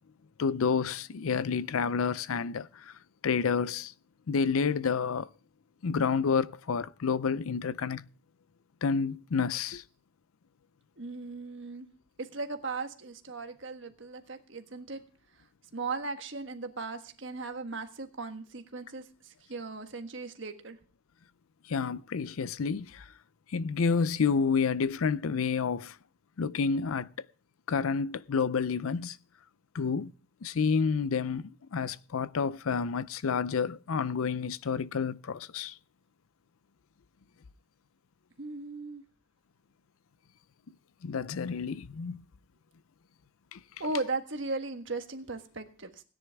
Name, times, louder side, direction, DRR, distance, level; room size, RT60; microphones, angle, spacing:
voice 1, 0.4-2.9 3.2-3.9 4.3-5.3 5.8-8.0 8.8-9.8 21.7-23.1 23.5-26.0 26.4-27.1 27.7-29.2 29.7-30.1 30.4-35.8 40.7-40.8 41.0-42.2 43.5-43.6, left 5 dB, 80° left, 0.5 m, -29 dB
voice 2, 11.0-11.9 12.2-15.0 15.7-20.8 38.4-39.0 43.8-46.0, right 3 dB, 60° right, 1.5 m, -37 dB
17.0 x 10.0 x 3.5 m
head